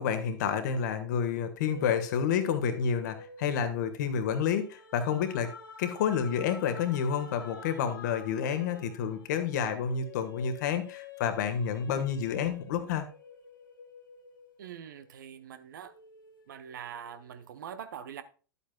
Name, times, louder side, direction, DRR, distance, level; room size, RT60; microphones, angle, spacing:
voice 1, 0.0-5.5 5.8-13.0, left 7 dB, 55° left, 1.6 m, -29 dB
sound 1, 1.6-15.4 15.8-17.5, left 4 dB, 75° left, 1.7 m, -50 dB
voice 2, 14.6-15.9 16.5-18.2, right 8 dB, 60° right, 0.9 m, -43 dB
11.5 x 8.3 x 2.3 m
figure-of-eight pair, 95°, 11 cm